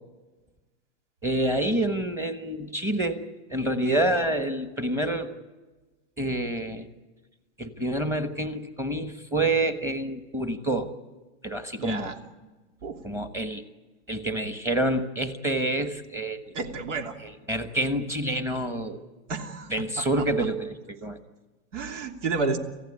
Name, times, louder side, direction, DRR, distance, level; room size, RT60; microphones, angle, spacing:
voice 1, 1.2-3.2 3.5-5.3 6.2-6.9 7.6-10.9 11.4-12.1 13.0-13.6 14.1-16.5 17.2-19.0 19.7-21.2, right 1 dB, 5° right, 8 dB, 1.2 m, -27 dB
voice 2, 11.8-12.1 12.8-13.0 16.5-17.1 19.3-20.0 21.7-22.6, right 4 dB, 85° right, 5 dB, 3.1 m, -31 dB
27.5 x 15.5 x 9.9 m, 1.2 s
supercardioid pair, 170°, 36 cm